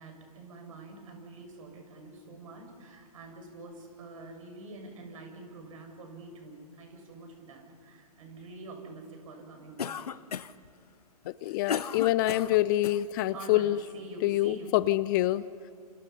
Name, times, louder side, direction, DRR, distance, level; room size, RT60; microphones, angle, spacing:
voice 1, 0.0-10.2 13.3-14.7, right 2 dB, 55° right, 4 dB, 7.1 m, -46 dB
Cough, 9.8-10.7 11.2-13.0, left 7 dB, 75° left, 0.9 m, -35 dB
voice 2, 11.3-13.8 14.2-15.4, left 15 dB, 30° left, 18 dB, 0.5 m, -26 dB
29.0 x 28.5 x 5.7 m, 2.3 s
figure-of-eight pair, 125°, 20 cm